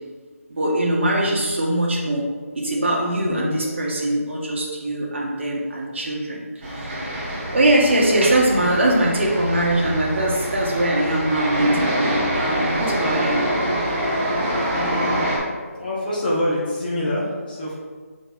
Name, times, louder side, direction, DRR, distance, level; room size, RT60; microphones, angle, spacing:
voice 1, 0.5-2.2 2.5-13.4, right 1 dB, 50° right, -4 dB, 1.6 m, -22 dB
voice 2, 3.2-3.7 14.1-15.2 15.7-17.7, left 1 dB, 35° left, -4 dB, 1.7 m, -27 dB
sound 1, 6.6-15.4, equal, 15° right, 1.4 m, -25 dB
7.0 x 4.9 x 3.4 m, 1.5 s
figure-of-eight pair, 165°, 8 cm